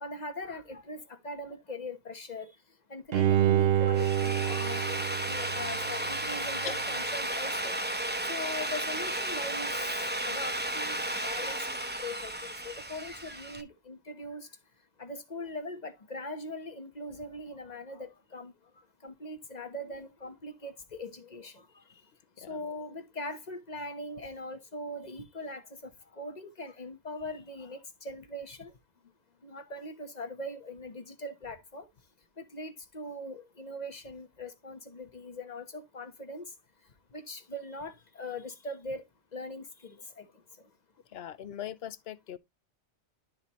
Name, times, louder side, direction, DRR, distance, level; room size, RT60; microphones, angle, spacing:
voice 1, 0.0-2.6 2.9-4.8 5.3-7.8 8.2-9.7 10.2-14.5 15.0-18.5 19.0-22.0 22.4-28.7 29.4-31.9 32.4-36.5 37.1-39.0 39.3-40.3, left 1 dB, 40° left, 1.2 m, -41 dB
Bowed string instrument, 3.1-6.2 6.7-6.8, right 10 dB, 65° right, 0.8 m, -27 dB
Drill, 3.8-13.6, right 1 dB, 10° right, 0.8 m, -33 dB
voice 2, 41.1-42.4, left 10 dB, 65° left, 0.9 m, -40 dB
12.0 x 4.2 x 3.0 m
omnidirectional pair, 1.1 m